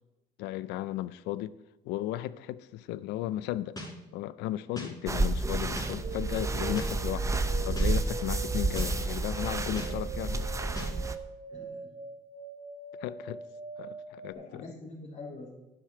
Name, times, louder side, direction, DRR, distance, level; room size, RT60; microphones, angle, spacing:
voice 1, 0.4-1.6 1.8-3.8 4.1-10.4 13.0-13.4 13.8-14.0 14.2-14.6, left 14 dB, 90° left, 0.5 m, -35 dB
sound 1, 3.8-3.9 4.8-4.9 5.8-5.9 6.8-6.9 7.8-7.9 8.8-8.9 9.8-9.9 10.8-10.9, left 1 dB, 20° left, 4.5 m, -38 dB
sound 2, 5.1-11.1, right 3 dB, 20° right, 0.8 m, -30 dB
sound 3, 6.0-14.3, right 4 dB, 50° right, 1.7 m, -42 dB
voice 2, 11.5-11.9 14.3-15.5, left 3 dB, 50° left, 3.9 m, -45 dB
12.0 x 11.0 x 4.6 m
cardioid pair, 110°, 17 cm